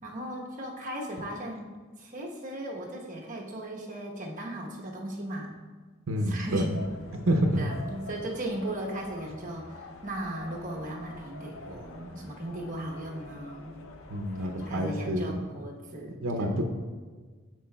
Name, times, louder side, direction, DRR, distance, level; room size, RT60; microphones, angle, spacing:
voice 1, 0.0-1.7 2.0-5.5 6.2-6.7 7.6-13.7 14.3-16.7, right 1 dB, 40° right, -2 dB, 1.0 m, -37 dB
voice 2, 6.1-6.6 7.1-7.7 14.1-15.4 16.2-16.7, equal, 80° right, 4 dB, 0.6 m, -28 dB
sound 1, 6.7-14.9, left 2 dB, 75° left, 0.5 m, -46 dB
10.5 x 4.7 x 2.3 m, 1.5 s
head